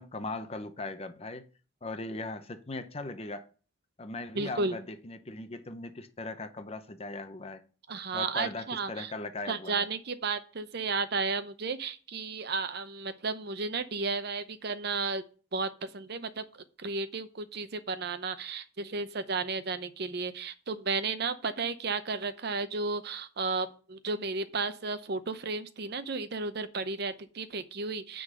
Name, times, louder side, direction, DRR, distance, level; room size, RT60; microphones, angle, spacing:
voice 1, 0.0-1.5 1.8-3.5 4.0-7.6 8.1-9.8, left 2 dB, 30° left, 0.8 m, -39 dB
voice 2, 4.3-4.8 7.9-9.1 9.5-15.2 15.5-16.4 16.8-28.2, right 4 dB, 55° right, 0.7 m, -33 dB
9.5 x 3.9 x 6.6 m
head